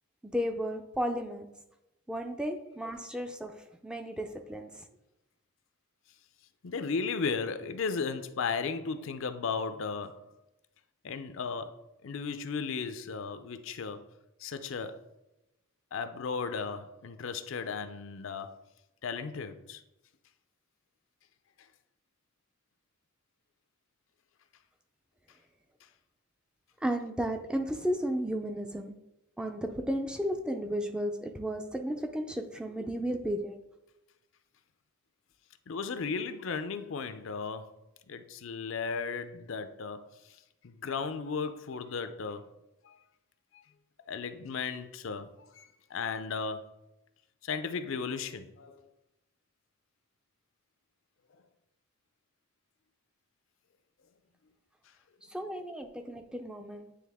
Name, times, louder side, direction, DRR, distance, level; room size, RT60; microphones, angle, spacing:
voice 1, 0.2-1.5 2.1-3.5 3.8-4.7 26.8-29.0 29.4-33.6 55.3-56.9, equal, 5° right, 0.4 m, -33 dB
voice 2, 6.6-10.3 11.0-14.1 14.4-15.0 15.9-18.6 19.0-19.8 35.7-37.8 38.1-40.4 40.6-42.5 42.8-43.0 43.5-43.6 44.1-45.6 45.9-46.7 47.4-48.8 55.3-55.7, left 5 dB, 65° left, 0.5 m, -35 dB
9.3 x 3.3 x 3.5 m
head